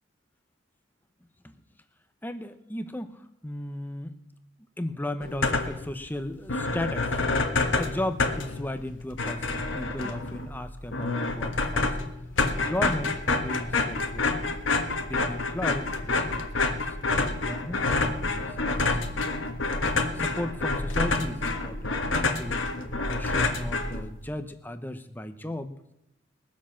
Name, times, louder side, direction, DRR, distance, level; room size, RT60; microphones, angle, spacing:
voice 1, 2.2-4.1 4.8-7.1 7.8-11.9 12.4-14.5 15.0-18.9 20.1-22.6 23.0-25.7, left 1 dB, 10° left, 9 dB, 0.8 m, -36 dB
sound 1, 5.2-5.9 6.2-6.3 6.5-24.3, left 3 dB, 90° left, 1.5 m, -28 dB
22.0 x 7.5 x 5.9 m, 0.83 s
head